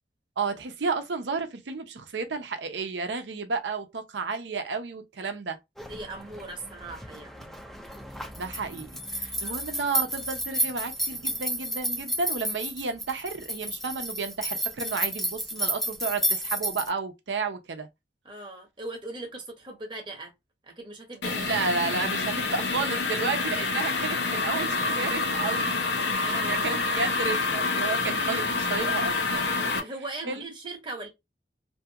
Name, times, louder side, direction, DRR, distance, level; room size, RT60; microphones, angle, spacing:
voice 1, 0.4-5.6 8.4-17.9 21.3-25.8 26.1-29.8 30.3-30.4, right 4 dB, 80° right, 0.6 m, -32 dB
sound 1, 5.8-16.9, right 1 dB, ahead, 0.4 m, -32 dB
voice 2, 5.9-7.6 9.4-9.7 18.2-20.3 20.6-21.7 24.8-24.9 26.2-26.6 29.7-31.1, right 2 dB, 25° right, 0.9 m, -39 dB
sound 2, 21.2-29.8, left 3 dB, 75° left, 0.7 m, -27 dB
2.7 x 2.3 x 2.7 m
head